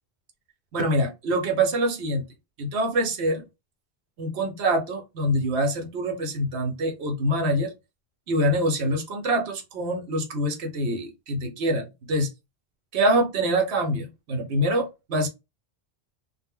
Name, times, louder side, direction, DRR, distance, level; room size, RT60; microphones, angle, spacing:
voice 1, 0.7-2.3 2.6-3.4 4.2-7.7 8.3-12.3 12.9-15.3, right 1 dB, 75° right, 0.9 m, -25 dB
2.1 x 2.0 x 3.4 m
omnidirectional pair, 1.1 m